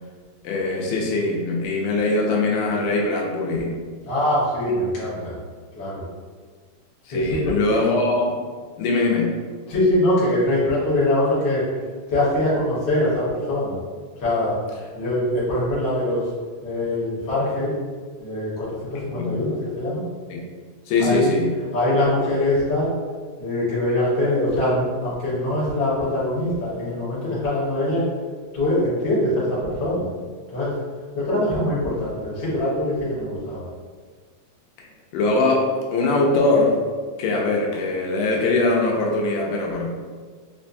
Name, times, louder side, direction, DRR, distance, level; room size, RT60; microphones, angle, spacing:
voice 1, 0.4-3.7 7.1-8.4 8.8-9.3 19.2-19.4 20.3-20.4 20.9-21.5 34.8-34.9 35.1-36.8 37.2-39.9, left 2 dB, 85° left, -1 dB, 2.3 m, -21 dB
voice 2, 4.0-5.4 5.7-6.1 7.1-7.5 9.7-11.6 12.1-13.8 14.2-16.3 16.6-17.8 18.2-20.0 21.0-21.3 21.7-22.9 23.4-28.0 28.5-30.1 30.5-30.7 31.1-33.7, left 1 dB, 50° left, -9 dB, 1.3 m, -23 dB
5.3 x 2.1 x 2.5 m, 1.5 s
omnidirectional pair, 3.8 m